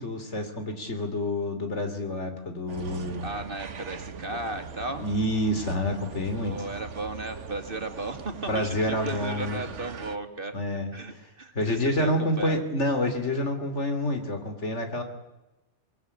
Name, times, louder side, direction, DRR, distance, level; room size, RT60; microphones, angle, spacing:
voice 1, 0.0-3.2 5.0-6.6 8.5-9.6 10.5-10.9 11.5-15.0, left 1 dB, 75° left, 6 dB, 3.5 m, -28 dB
sound 1, 2.7-10.2, right 6 dB, 85° right, 1.5 m, -41 dB
voice 2, 3.2-5.0 6.4-10.5 10.9-12.6, right 2 dB, 50° right, 6 dB, 2.6 m, -35 dB
23.0 x 22.5 x 8.6 m, 1.0 s
omnidirectional pair, 1.2 m